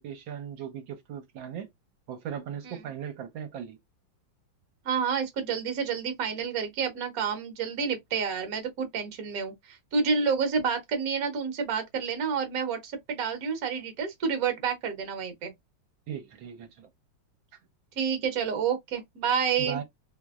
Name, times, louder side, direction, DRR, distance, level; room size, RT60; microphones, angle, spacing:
voice 1, 0.0-1.7 2.1-3.8 16.1-16.9 19.6-19.8, right 8 dB, 70° right, 1.4 m, -38 dB
voice 2, 4.8-15.5 18.0-19.8, right 6 dB, 55° right, 1.2 m, -29 dB
3.4 x 3.0 x 2.3 m
omnidirectional pair, 2.3 m